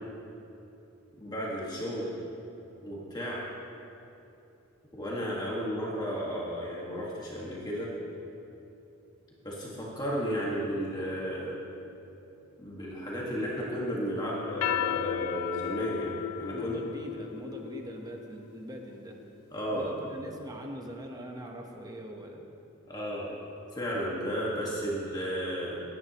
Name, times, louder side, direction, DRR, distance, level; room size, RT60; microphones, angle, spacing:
voice 1, 1.2-2.1 2.8-3.4 4.9-7.9 9.4-11.6 12.6-16.1 16.4-16.8 19.5-19.9 22.9-23.3 23.7-25.8, equal, 20° left, -5 dB, 1.6 m, -33 dB
sound 1, 14.5-19.2, left 11 dB, 90° left, 0.3 m, -34 dB
voice 2, 16.5-19.2 19.7-22.4, equal, 20° right, 2 dB, 1.0 m, -42 dB
18.5 x 10.0 x 3.0 m, 2.8 s
head